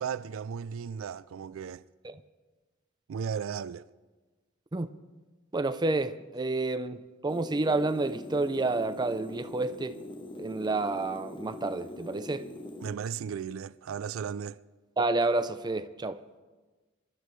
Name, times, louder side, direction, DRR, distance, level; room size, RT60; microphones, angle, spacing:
voice 1, 0.0-1.8 3.1-3.8 12.8-14.6, right 7 dB, 80° right, 0.4 m, -35 dB
voice 2, 5.5-10.0 10.4-12.5 15.0-16.2, right 2 dB, 20° right, 0.5 m, -29 dB
sound 1, 7.3-12.9, left 1 dB, 25° left, 0.8 m, -43 dB
26.0 x 12.0 x 3.2 m
head